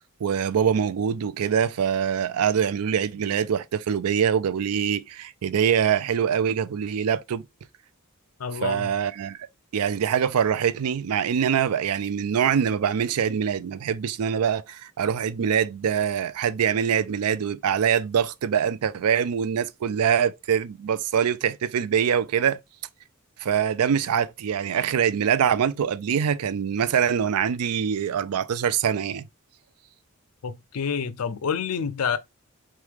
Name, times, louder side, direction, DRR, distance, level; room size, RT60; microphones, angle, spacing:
voice 1, 0.2-7.5 8.6-9.4 9.7-22.6 23.4-29.2, right 8 dB, 85° right, 0.4 m, -24 dB
voice 2, 8.4-8.9 30.4-32.2, left 6 dB, 80° left, 0.5 m, -28 dB
3.6 x 3.1 x 3.4 m
head